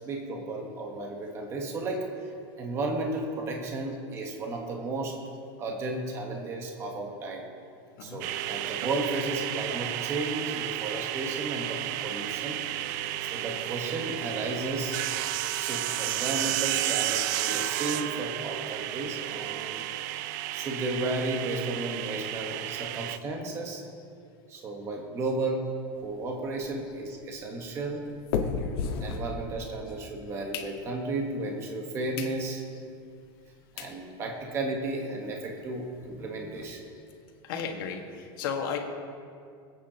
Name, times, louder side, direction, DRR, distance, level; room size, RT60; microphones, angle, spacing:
voice 1, 0.0-2.3 2.6-5.2 5.6-7.4 8.0-12.6 13.2-15.0 15.5-19.8 20.5-23.8 24.5-25.7 26.0-28.0 29.0-32.6 33.7-36.8, right 2 dB, 20° right, 1 dB, 1.3 m, -33 dB
sound 1, 8.2-23.2, right 14 dB, 50° right, 0.4 m, -32 dB
sound 2, 25.9-29.9 30.3-31.2 31.7-31.8 32.1-32.4 32.8-32.9 33.5-33.6 33.8-34.0 34.4-34.5 34.7-34.8 35.1-35.2 35.5-36.6, left 5 dB, 85° left, 1.6 m, -36 dB
voice 2, 37.4-38.8, left 7 dB, 65° left, 2 dB, 1.7 m, -33 dB
25.5 x 8.8 x 2.9 m, 2.3 s
supercardioid pair, 175°, 13 cm